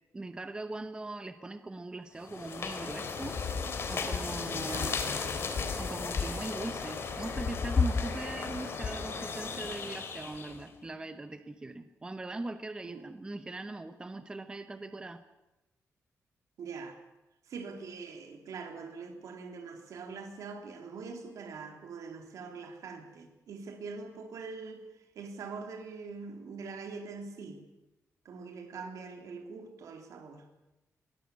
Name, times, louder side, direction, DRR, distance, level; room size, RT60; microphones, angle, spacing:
voice 1, 0.1-3.4 3.9-5.0 5.8-15.2, right 2 dB, 15° right, 10 dB, 0.9 m, -41 dB
sound 1, 2.2-10.6, left 5 dB, 45° left, 3.3 m, -34 dB
voice 2, 4.5-4.9 12.8-13.1 16.6-17.0 17.5-27.6 28.3-30.5, right 4 dB, 80° right, 5 dB, 3.6 m, -43 dB
22.5 x 19.0 x 8.5 m, 1.0 s
wide cardioid pair, 180°, 6 cm